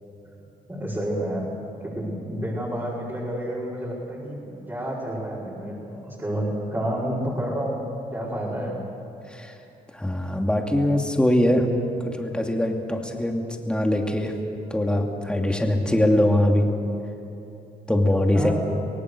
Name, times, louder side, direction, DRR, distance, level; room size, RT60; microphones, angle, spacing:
voice 1, 0.7-1.5 1.8-7.9 8.1-8.8 18.3-18.5, right 1 dB, 15° right, -8 dB, 5.7 m, -29 dB
voice 2, 9.9-11.7 12.1-14.3 14.7-16.7 17.9-18.5, left 1 dB, 5° left, 2 dB, 2.6 m, -22 dB
25.0 x 17.5 x 6.7 m, 2.9 s
cardioid pair, 70°, 16 cm